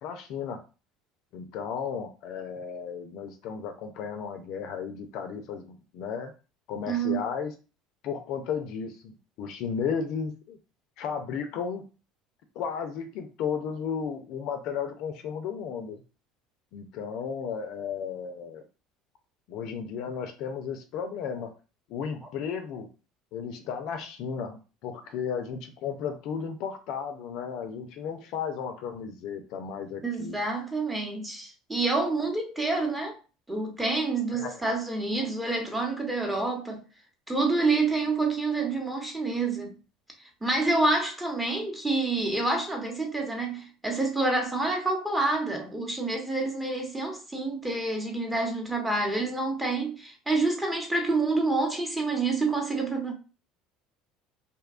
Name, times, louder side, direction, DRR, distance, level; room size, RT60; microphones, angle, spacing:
voice 1, 0.0-0.6 1.3-6.3 6.7-7.5 8.0-10.6 11.0-11.8 12.6-16.0 16.7-18.6 19.5-21.5 21.9-22.9 23.3-30.4 34.3-34.6, left 6 dB, 65° left, 0.4 m, -34 dB
voice 2, 6.9-7.2 30.0-33.2 33.5-36.8 37.3-39.7 40.4-53.1, right 3 dB, 10° right, 0.8 m, -28 dB
2.6 x 2.2 x 2.4 m
supercardioid pair, 85°, 0 cm